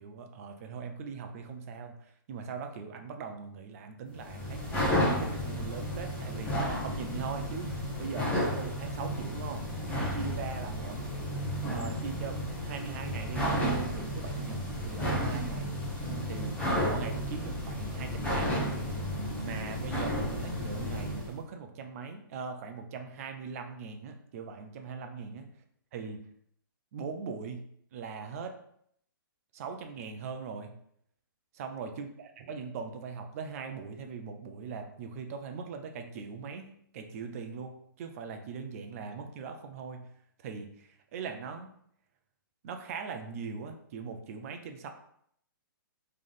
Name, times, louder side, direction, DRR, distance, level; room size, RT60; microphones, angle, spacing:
voice 1, 0.0-4.9 5.2-9.7 10.1-11.4 11.7-15.7 16.3-16.6 16.8-18.6 19.4-25.5 25.9-26.2 26.9-27.7 27.9-28.6 29.5-30.7 31.5-36.7 36.9-40.1 40.4-41.7 42.6-44.9, right 5 dB, 40° right, 5 dB, 0.6 m, -40 dB
sound 1, 4.1-21.3, equal, 10° left, 1.1 m, -32 dB
3.7 x 3.3 x 3.8 m, 0.68 s
hypercardioid pair, 150°, 12 cm